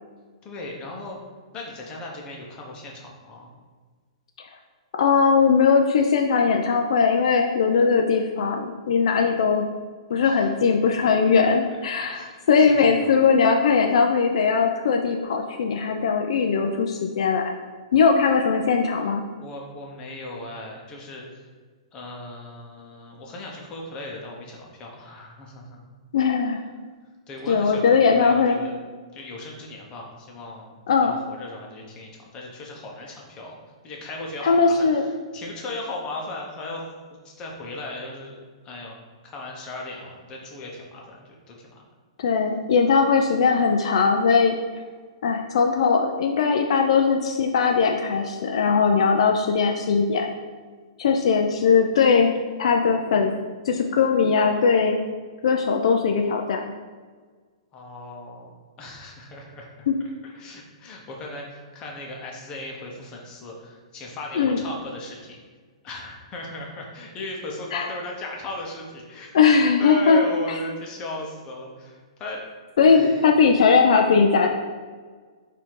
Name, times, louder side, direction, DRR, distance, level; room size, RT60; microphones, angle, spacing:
voice 1, 0.4-1.2 1.5-3.5 10.2-10.5 11.0-11.6 11.9-13.1 19.3-21.5 21.9-25.8 27.3-28.7 29.1-33.6 33.8-35.1 35.3-36.9 37.2-38.4 38.6-39.0 39.2-41.8 57.7-58.5 58.8-59.9 60.2-65.4 65.8-69.3 69.8-72.4 72.8-73.3, left 2 dB, 25° left, -1 dB, 0.9 m, -37 dB
voice 2, 5.0-9.7 10.1-17.5 17.9-19.2 26.1-26.6 27.5-28.6 30.9-31.2 34.4-35.0 42.2-44.5 45.2-50.3 51.0-52.3 52.6-53.3 53.7-55.0 55.4-56.7 59.9-60.0 64.3-64.6 67.7-67.9 69.3-70.2 72.8-74.5, left 5 dB, 70° left, 3 dB, 0.4 m, -20 dB
4.1 x 2.8 x 4.7 m, 1.5 s
hypercardioid pair, 140°, 3 cm